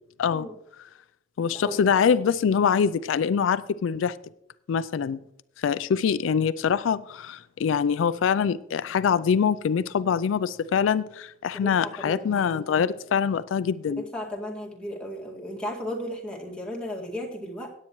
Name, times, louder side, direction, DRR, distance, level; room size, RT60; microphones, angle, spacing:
voice 1, 1.4-4.2 4.7-5.2 5.6-14.0, left 7 dB, 85° left, 15 dB, 0.4 m, -24 dB
voice 2, 11.5-12.4 14.0-17.7, equal, 5° left, -2 dB, 2.0 m, -35 dB
17.5 x 8.4 x 3.1 m, 0.78 s
head